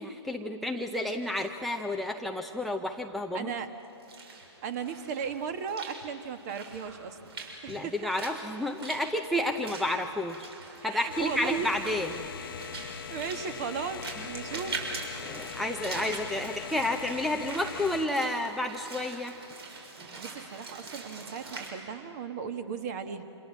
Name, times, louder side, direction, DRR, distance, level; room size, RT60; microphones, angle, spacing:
voice 1, 0.0-3.5 7.7-10.5 10.8-12.1 15.2-19.3, left 1 dB, ahead, 6 dB, 0.6 m, -31 dB
voice 2, 3.3-3.7 4.6-7.2 7.6-7.9 10.8-11.7 13.1-14.8 20.2-23.2, right 7 dB, 35° right, 8 dB, 1.8 m, -36 dB
Walk footsteps / Splash splatter, 3.8-21.7, right 3 dB, 60° right, 6.4 m, -43 dB
sound 1, 11.1-18.1, left 8 dB, 50° left, 1.0 m, -41 dB
28.0 x 27.0 x 7.3 m, 2.9 s
hypercardioid pair, 145°, 15 cm